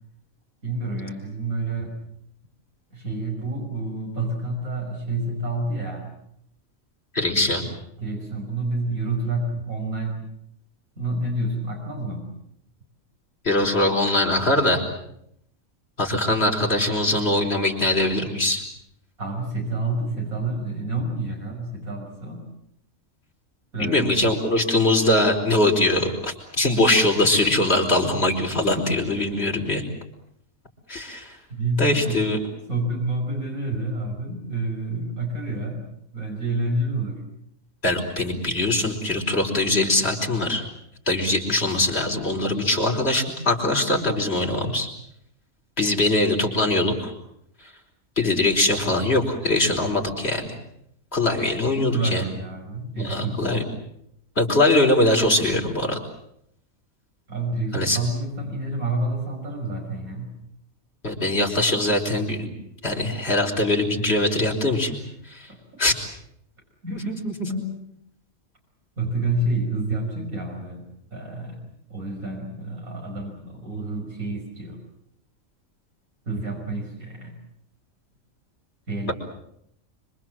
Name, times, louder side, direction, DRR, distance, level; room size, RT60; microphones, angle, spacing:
voice 1, 0.6-2.0 2.9-6.2 7.3-7.6 8.0-10.2 11.0-12.3 19.2-22.5 23.7-24.4 29.0-29.1 31.5-32.2 32.7-35.9 36.1-37.2 51.9-53.6 57.3-60.3 65.5-65.8 66.8-67.8 69.0-71.6 71.9-74.8 76.3-77.4 78.9-79.1, right 2 dB, 85° right, 1 dB, 6.1 m, -29 dB
voice 2, 7.1-7.6 13.4-14.8 16.0-18.6 23.8-29.8 30.9-31.4 31.8-32.4 37.8-40.6 41.1-44.9 45.8-47.1 48.2-50.6 51.1-52.2 53.0-53.6 54.4-56.0 57.7-58.0 61.0-62.5 62.8-65.0 65.2-65.5 65.8-65.9 66.9-67.5, left 2 dB, 45° left, 0 dB, 4.8 m, -22 dB
26.0 x 25.0 x 7.6 m, 0.75 s
omnidirectional pair, 1.4 m